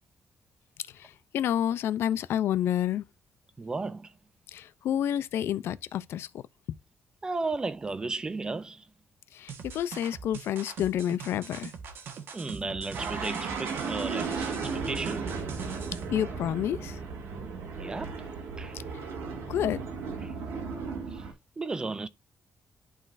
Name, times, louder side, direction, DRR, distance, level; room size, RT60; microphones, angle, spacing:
voice 1, 0.9-3.0 4.5-6.4 9.3-11.7 16.1-17.0 19.5-19.8, left 10 dB, 80° left, 0.4 m, -29 dB
voice 2, 3.6-4.1 7.2-8.8 12.3-15.3 17.8-18.2 18.6-18.8 20.2-20.3 21.1-21.2 21.6-22.1, right 3 dB, 20° right, 0.4 m, -34 dB
sound 1, 9.5-16.2, right 5 dB, 65° right, 1.2 m, -42 dB
sound 2, 12.9-21.3, right 5 dB, 90° right, 1.8 m, -35 dB
11.0 x 3.9 x 2.5 m
cardioid pair, 150°, 4 cm